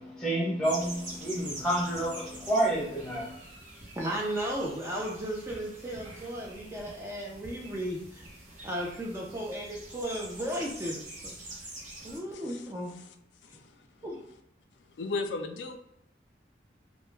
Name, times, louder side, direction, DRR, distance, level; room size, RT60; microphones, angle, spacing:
voice 1, 0.0-3.4, right 1 dB, 5° left, -6 dB, 0.9 m, -29 dB
sound 1, 0.6-12.2, right 1 dB, 45° right, 0.7 m, -45 dB
voice 2, 3.9-8.3 8.6-11.7 12.0-13.0 13.5-13.6 14.0-14.2, right 1 dB, 15° right, -2 dB, 0.4 m, -35 dB
voice 3, 12.0-13.1 13.4-13.9 14.9-15.8, left 3 dB, 85° left, 6 dB, 0.3 m, -37 dB
2.2 x 2.0 x 3.1 m, 0.78 s
head